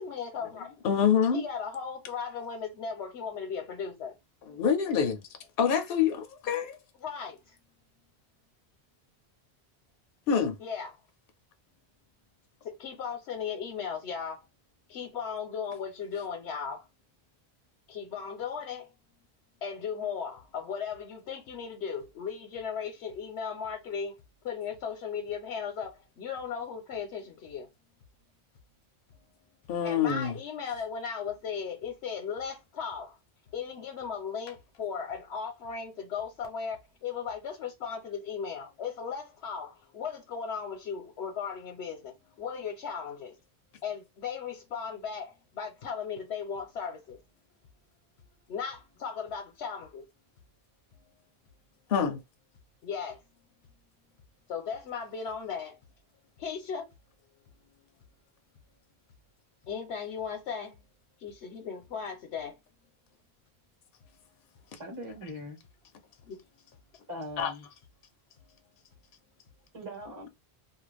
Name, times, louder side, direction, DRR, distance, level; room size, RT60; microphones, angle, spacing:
voice 1, 0.0-0.7 1.3-4.1 7.0-7.4 10.6-10.9 12.6-14.4 14.9-16.8 17.9-18.9 19.6-24.1 24.4-27.7 29.8-33.1 33.5-43.3 43.8-47.2 48.5-50.0 52.8-53.2 54.5-55.8 56.4-56.8 59.7-60.7 61.2-62.5 66.3-66.4, left 6 dB, 85° left, 1.0 m, -36 dB
voice 2, 0.8-1.4 4.5-5.2 5.6-6.8 10.3-10.6 29.7-30.3 51.9-52.2 64.7-64.8 67.4-67.5, left 7 dB, 65° left, 0.7 m, -26 dB
voice 3, 64.8-65.6 67.1-67.7 69.7-70.3, equal, 20° right, 1.0 m, -40 dB
2.4 x 2.2 x 3.2 m
omnidirectional pair, 1.1 m